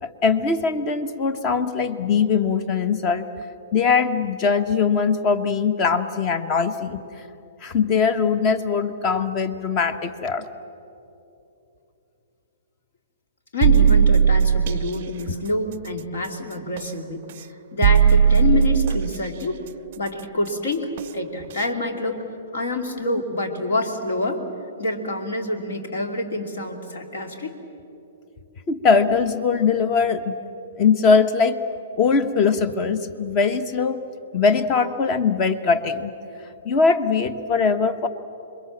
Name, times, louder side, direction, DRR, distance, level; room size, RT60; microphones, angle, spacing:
voice 1, 0.0-3.3 3.7-7.2 7.6-10.5 23.0-23.2 28.7-30.4 30.8-31.6 32.0-34.0 34.3-36.1 36.6-38.1, left 5 dB, 30° left, 11 dB, 1.3 m, -21 dB
voice 2, 13.5-17.2 17.7-19.6 20.0-22.2 22.5-24.4 24.8-27.5, left 2 dB, 65° left, 5 dB, 2.9 m, -27 dB
sound 1, 13.6-14.9 16.8-16.9 17.8-19.2 21.0-21.1 21.6-21.7, right 7 dB, 50° right, 0.5 m, -16 dB
27.0 x 22.5 x 7.5 m, 2.9 s
figure-of-eight pair, 115°, 0 cm